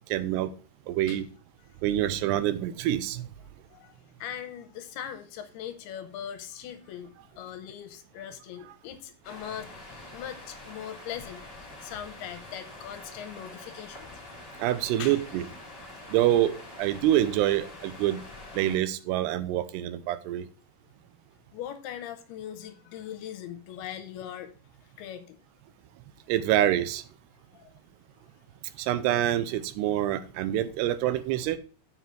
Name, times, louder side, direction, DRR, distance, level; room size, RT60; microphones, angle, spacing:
voice 1, 0.1-0.5 0.9-1.2 1.8-3.3 14.6-15.4 16.1-18.2 18.5-20.5 26.3-27.0 28.8-31.6, right 12 dB, 85° right, 13 dB, 2.7 m, -26 dB
voice 2, 3.7-9.7 10.1-14.1 15.0-15.2 18.4-18.6 21.5-24.5 25.0-25.4 27.5-27.7, left 10 dB, 80° left, 10 dB, 2.6 m, -40 dB
sound 1, 9.2-18.8, left 2 dB, 15° left, 2.7 m, -45 dB
7.3 x 5.9 x 6.1 m, 0.39 s
omnidirectional pair, 4.8 m